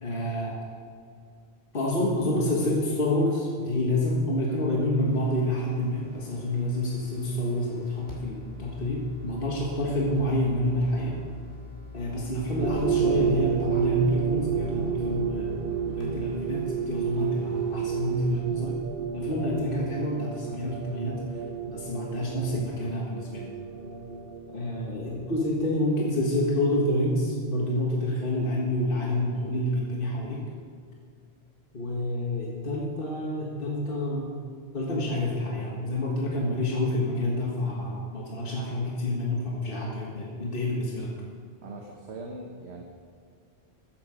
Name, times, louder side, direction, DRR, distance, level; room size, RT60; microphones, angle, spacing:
voice 1, 0.0-0.6 1.7-11.2 11.9-15.7 16.0-18.7 19.1-21.2 21.7-23.5 24.5-30.4 31.7-34.3 34.7-41.1, left 1 dB, 55° left, -3 dB, 1.8 m, -28 dB
sound 1, 5.0-18.4, left 3 dB, 70° left, 3.0 m, -45 dB
sound 2, 12.6-25.8, right 7 dB, 60° right, 0.9 m, -31 dB
voice 2, 41.6-42.8, right 2 dB, 80° right, 1 dB, 1.4 m, -40 dB
13.5 x 10.5 x 5.1 m, 2.3 s
omnidirectional pair, 1.1 m